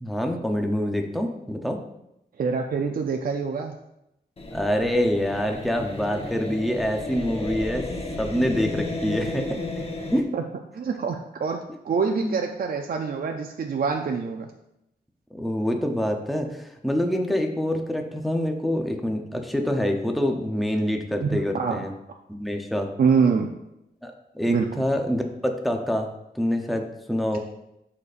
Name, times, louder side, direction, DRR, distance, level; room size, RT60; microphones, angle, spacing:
voice 1, 0.0-1.8 4.5-7.9 8.2-9.6 10.1-10.3 11.7-11.8 12.2-12.4 15.3-21.9 22.3-22.9 24.0-26.1 26.3-27.4, equal, ahead, 3 dB, 0.7 m, -26 dB
voice 2, 2.4-3.7 8.0-8.1 10.3-10.4 10.7-14.5 21.2-21.8 23.0-23.5 24.5-24.7, right 5 dB, 60° right, 3 dB, 0.5 m, -25 dB
sound 1, 4.4-10.2, left 2 dB, 35° left, 1.0 m, -33 dB
11.5 x 4.2 x 2.5 m, 0.84 s
wide cardioid pair, 100°, 17 cm